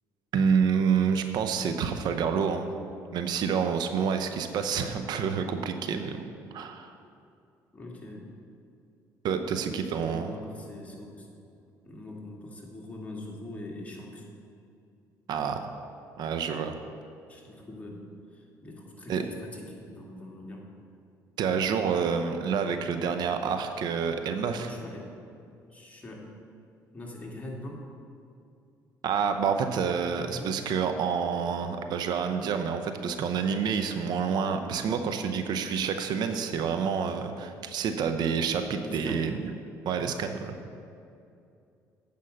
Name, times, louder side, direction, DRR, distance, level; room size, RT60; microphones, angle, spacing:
voice 1, 0.3-2.7 3.1-6.3 6.5-6.9 9.2-10.3 15.3-15.6 16.2-16.7 19.1-19.2 21.4-24.7 29.0-39.4 39.9-40.6, right 6 dB, 65° right, 7 dB, 0.7 m, -28 dB
voice 2, 7.7-8.2 9.6-11.3 11.8-14.3 17.3-20.6 24.6-25.1 25.7-26.3 26.9-27.8 30.0-30.5 38.8-39.3, left 1 dB, 20° left, -2 dB, 2.3 m, -42 dB
8.6 x 5.4 x 7.7 m, 2.5 s
supercardioid pair, 75°, 8 cm